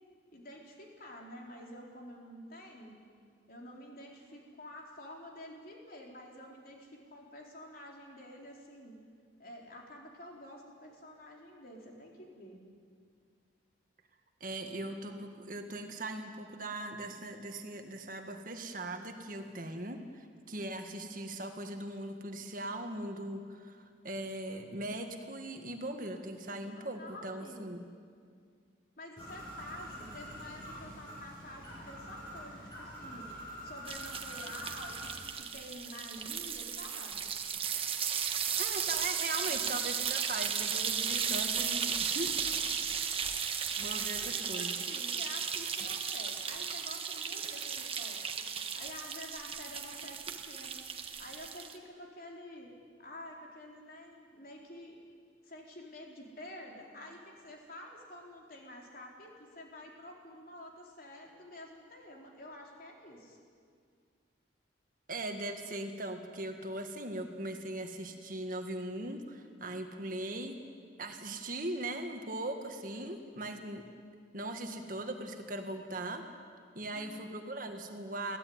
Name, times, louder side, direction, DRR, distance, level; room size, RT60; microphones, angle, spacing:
voice 1, 0.3-3.0 3.5-9.0 9.4-12.6 26.7-27.8 29.0-33.3 33.6-37.3 39.4-39.6 44.0-52.7 53.0-55.0 55.4-63.4 76.9-77.4, left 1 dB, 50° left, 0 dB, 4.0 m, -49 dB
voice 2, 14.4-27.8 38.6-42.7 43.8-44.7 65.1-70.6 71.0-73.8 74.3-76.2 76.8-78.4, right 1 dB, 45° right, 5 dB, 1.8 m, -39 dB
Bird, 29.2-35.3, equal, 20° left, 7.7 m, -46 dB
sound 1, 33.9-51.8, right 7 dB, 30° right, 1.3 m, -35 dB
23.0 x 16.0 x 9.5 m, 2.1 s
head